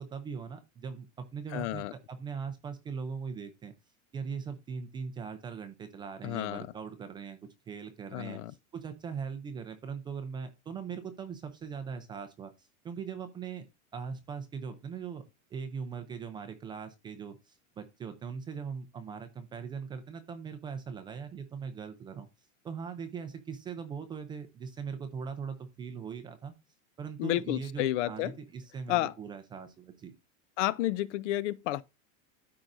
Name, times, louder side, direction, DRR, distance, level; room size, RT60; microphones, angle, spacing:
voice 1, 0.0-3.7 4.1-7.4 7.7-8.4 8.7-13.7 13.9-15.2 15.5-22.3 22.6-26.5 27.0-30.1, right 6 dB, 10° right, 0.4 m, -40 dB
voice 2, 1.5-1.9 6.2-6.7 8.1-8.5 27.2-28.3 28.9-29.1 30.6-31.8, left 15 dB, 65° left, 0.6 m, -31 dB
13.0 x 4.7 x 2.5 m
supercardioid pair, 150°, 40 cm